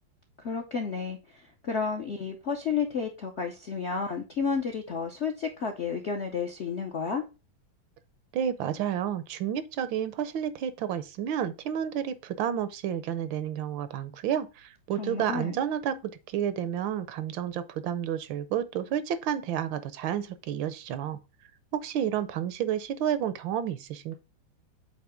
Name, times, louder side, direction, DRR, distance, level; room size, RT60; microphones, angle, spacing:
voice 1, 0.4-7.2 15.0-15.6, left 5 dB, 65° left, 0.7 m, -31 dB
voice 2, 8.3-21.2 21.7-24.2, right 9 dB, 75° right, 1.3 m, -30 dB
7.9 x 2.9 x 4.9 m
omnidirectional pair, 2.2 m